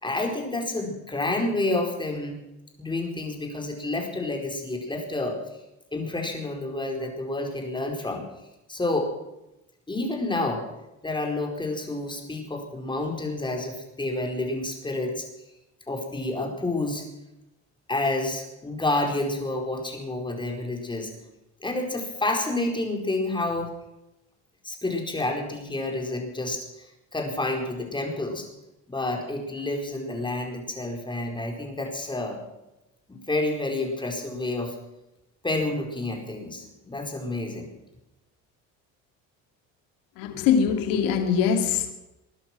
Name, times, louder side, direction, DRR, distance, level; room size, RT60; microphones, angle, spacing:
voice 1, 0.0-2.4 2.8-5.4 5.9-8.2 8.7-9.1 9.9-10.6 11.0-15.3 15.9-17.1 17.9-21.1 21.6-23.7 24.6-28.5 28.9-32.4 33.1-34.8 35.4-37.7, left 2 dB, 15° left, 2 dB, 4.4 m, -29 dB
voice 2, 40.2-41.9, left 7 dB, 75° left, 6 dB, 2.5 m, -23 dB
20.5 x 11.5 x 6.1 m, 0.94 s
cardioid pair, 100°, 33 cm